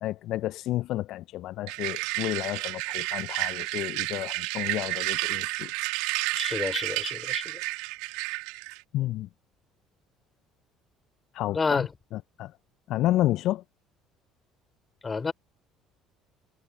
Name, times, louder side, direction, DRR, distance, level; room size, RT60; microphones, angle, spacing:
voice 1, 0.0-5.7 8.9-9.3 11.3-11.8 12.4-12.5 12.9-13.6, left 15 dB, 60° left, 0.8 m, -30 dB
sound 1, 1.7-8.8, right 26 dB, 65° right, 2.9 m, -31 dB
voice 2, 6.4-7.6 11.5-11.9 15.0-15.3, left 4 dB, 25° left, 4.2 m, -29 dB
figure-of-eight pair, 55°, 0 cm